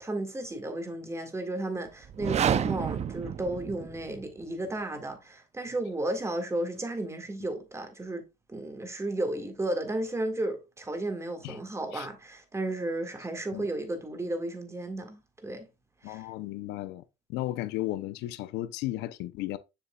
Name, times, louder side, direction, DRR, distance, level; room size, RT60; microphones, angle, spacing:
voice 1, 0.0-8.2 8.5-15.7 16.0-16.3, right 1 dB, 15° right, 1.8 m, -33 dB
sound 1, 2.0-4.2, right 8 dB, 40° right, 0.5 m, -29 dB
voice 2, 16.0-17.0 17.3-19.6, left 15 dB, 90° left, 0.6 m, -34 dB
6.9 x 6.8 x 2.3 m
cardioid pair, 110°, 17 cm